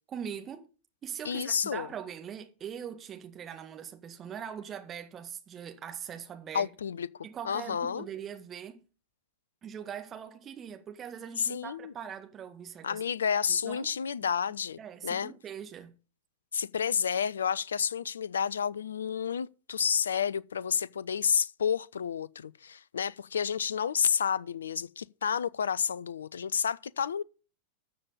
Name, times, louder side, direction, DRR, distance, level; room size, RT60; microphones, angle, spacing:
voice 1, 0.1-0.7 1.0-6.7 7.2-8.8 9.6-13.0 13.5-13.9 14.8-15.9, right 8 dB, 25° right, 1.8 m, -41 dB
voice 2, 1.2-1.9 6.5-7.1 7.4-8.1 11.4-11.9 12.8-15.3 16.5-27.2, left 7 dB, 70° left, 0.4 m, -30 dB
13.5 x 7.0 x 5.2 m
figure-of-eight pair, 90°, 0 cm